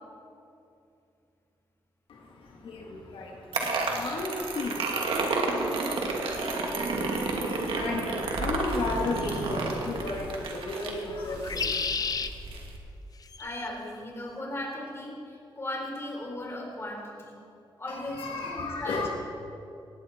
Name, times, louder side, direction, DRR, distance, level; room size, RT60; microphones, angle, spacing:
voice 1, 2.1-12.1 17.9-19.1, left 3 dB, 85° left, -1 dB, 2.1 m, -35 dB
sound 1, 3.5-12.8, right 3 dB, 85° right, 2.3 m, -31 dB
sound 2, 6.6-6.7 9.2-9.5 11.3-12.3 13.2-13.7, left 5 dB, 45° left, 0.8 m, -32 dB
voice 2, 13.4-17.4 17.8-19.1, left 1 dB, 30° left, -1 dB, 4.5 m, -37 dB
19.0 x 16.5 x 4.4 m, 2.6 s
cardioid pair, 100°, 9 cm